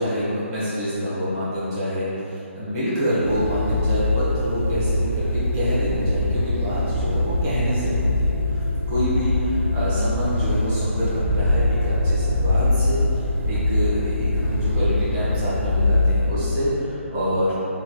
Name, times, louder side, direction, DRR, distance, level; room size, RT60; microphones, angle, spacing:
voice 1, 0.0-8.6 8.9-17.5, equal, 20° right, -11 dB, 1.4 m, -26 dB
sound 1, 3.2-16.3, left 2 dB, 70° right, 0.7 m, -22 dB
4.4 x 3.4 x 2.4 m, 2.9 s
figure-of-eight pair, 145°, 7 cm